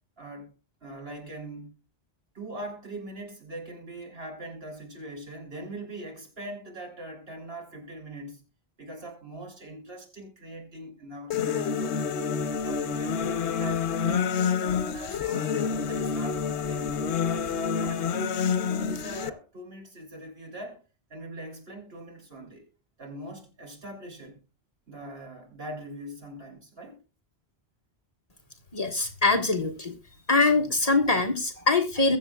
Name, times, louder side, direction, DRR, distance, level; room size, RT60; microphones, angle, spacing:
voice 1, 0.2-0.5 0.8-1.8 2.3-8.4 8.8-12.1 12.7-14.4 14.8-15.5 15.9-17.0 17.3-18.4 18.8-20.8 21.1-22.7 23.0-24.4 24.9-27.0, right 1 dB, 65° right, 3.7 m, -42 dB
sound 1, 11.3-19.3, left 6 dB, 90° left, 1.0 m, -28 dB
voice 2, 28.7-30.0 30.3-32.2, left 3 dB, 35° left, 1.5 m, -23 dB
22.0 x 7.3 x 2.3 m
omnidirectional pair, 1.1 m